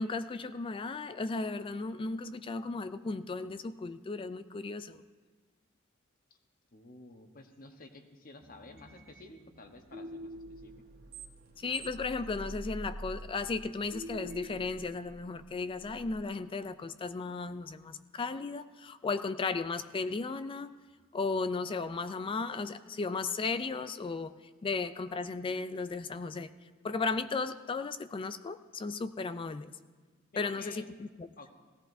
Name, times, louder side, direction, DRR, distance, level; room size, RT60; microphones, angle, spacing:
voice 1, 0.0-5.0 11.6-20.7 21.1-24.3 24.6-26.5 26.8-29.7 30.4-31.3, left 4 dB, 25° left, 13 dB, 0.3 m, -35 dB
voice 2, 6.7-10.7 30.3-30.9 31.4-31.5, left 2 dB, 45° left, 5 dB, 1.1 m, -51 dB
sound 1, 8.4-16.2, right 1 dB, 50° right, 1.1 m, -46 dB
18.5 x 16.0 x 2.7 m, 1.4 s
head